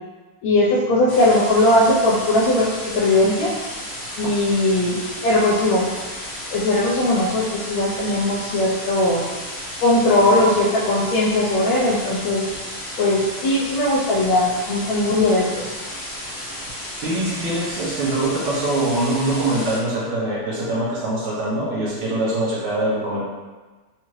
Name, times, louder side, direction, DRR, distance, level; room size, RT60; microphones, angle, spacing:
voice 1, 0.4-3.5 4.2-5.9 6.5-9.2 9.8-12.4 13.0-15.7, left 1 dB, 80° left, -5 dB, 1.4 m, -19 dB
sound 1, 1.1-19.8, equal, 55° left, 0.7 m, -33 dB
voice 2, 17.0-23.2, right 1 dB, 80° right, -7 dB, 1.6 m, -23 dB
4.1 x 2.4 x 3.1 m, 1.3 s
omnidirectional pair, 2.3 m